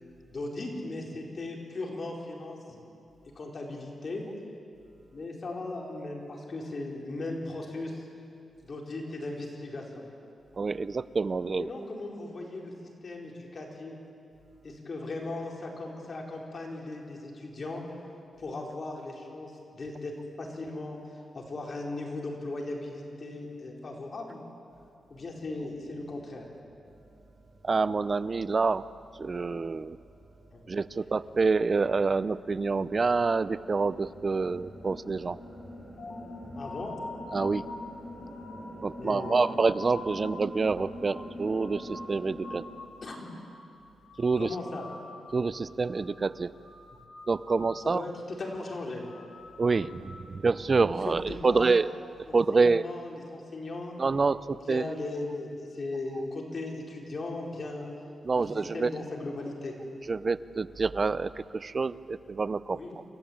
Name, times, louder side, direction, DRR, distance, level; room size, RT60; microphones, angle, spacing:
voice 1, 0.3-2.8 3.3-4.3 5.1-8.1 8.6-10.1 11.6-12.7 13.0-14.0 14.6-17.8 18.4-20.1 20.4-21.0 21.3-24.4 25.1-26.4 30.5-30.6 36.6-37.0 39.0-39.6 43.0-43.2 44.4-44.9 47.8-49.0 51.0-51.8 52.3-53.9 54.7-57.9 58.4-58.5 58.7-59.7 62.7-63.0, left 2 dB, 45° left, 0 dB, 4.6 m, -37 dB
voice 2, 10.6-11.7 27.6-28.9 29.2-30.0 30.7-35.4 37.3-37.6 38.8-42.7 44.2-44.6 45.3-46.5 47.3-48.0 49.6-51.9 52.3-52.9 54.0-54.9 58.2-58.9 60.1-63.0, right 4 dB, 40° right, 17 dB, 0.6 m, -27 dB
sound 1, 25.1-42.6, left 1 dB, 30° left, 6.2 m, -46 dB
sound 2, 36.0-43.0 43.2-43.7 44.0-45.5 45.7-46.2 46.5-48.0 48.3-48.7 49.0-50.4, left 3 dB, 75° left, 5.2 m, -46 dB
27.5 x 14.5 x 8.8 m, 2.5 s
cardioid pair, 85°, 0 cm